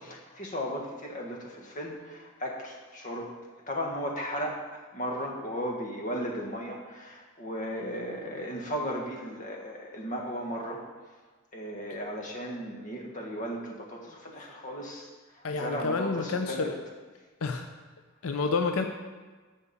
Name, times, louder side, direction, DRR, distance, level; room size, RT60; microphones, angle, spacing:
voice 1, 0.0-11.2 11.5-16.7, equal, 40° left, 0 dB, 1.4 m, -36 dB
voice 2, 15.4-16.7 17.4-17.7 18.2-18.8, left 4 dB, 80° left, 5 dB, 0.6 m, -29 dB
14.0 x 5.2 x 4.1 m, 1.4 s
head